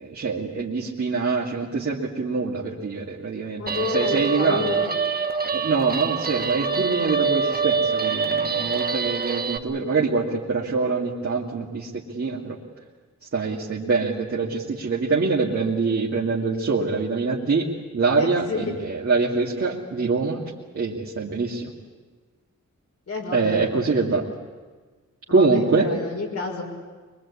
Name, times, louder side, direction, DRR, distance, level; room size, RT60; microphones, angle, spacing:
voice 1, 0.0-4.7 5.4-12.6 13.3-17.7 17.9-20.4 20.7-21.7 23.3-24.2 25.3-25.9, right 4 dB, 50° right, -5 dB, 2.5 m, -24 dB
voice 2, 3.6-5.0 18.2-18.7 23.1-24.2 25.3-26.6, left 3 dB, 55° left, 1 dB, 5.9 m, -30 dB
Guitar, 3.7-9.6, right 5 dB, 30° right, 1.3 m, -25 dB
23.5 x 23.0 x 8.5 m, 1.4 s
wide cardioid pair, 135°, 29 cm